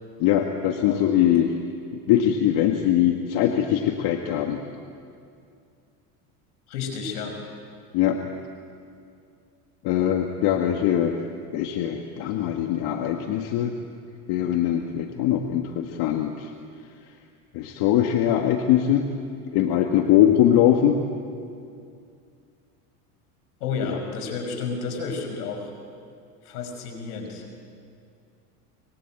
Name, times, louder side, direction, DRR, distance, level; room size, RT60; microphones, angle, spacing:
voice 1, 0.2-1.5 2.1-4.6 7.9-8.2 9.8-11.2 11.5-13.7 14.3-16.5 17.5-19.1 19.5-21.0, left 10 dB, 60° left, 4 dB, 1.9 m, -21 dB
voice 2, 0.8-1.4 6.7-7.4 23.6-25.7 26.4-27.5, left 5 dB, 80° left, 4 dB, 5.9 m, -31 dB
25.0 x 23.0 x 9.2 m, 2.4 s
hypercardioid pair, 95°, 45 cm